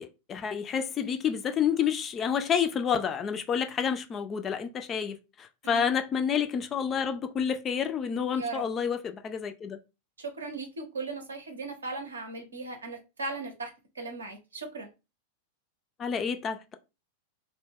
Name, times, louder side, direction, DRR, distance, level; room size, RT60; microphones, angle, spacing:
voice 1, 0.0-9.8 16.0-16.7, left 7 dB, 25° left, 0.3 m, -29 dB
voice 2, 5.6-6.0 8.3-8.6 10.2-13.7 14.0-14.9, right 3 dB, 70° right, 0.7 m, -37 dB
2.1 x 2.1 x 3.4 m
figure-of-eight pair, 90°, 0 cm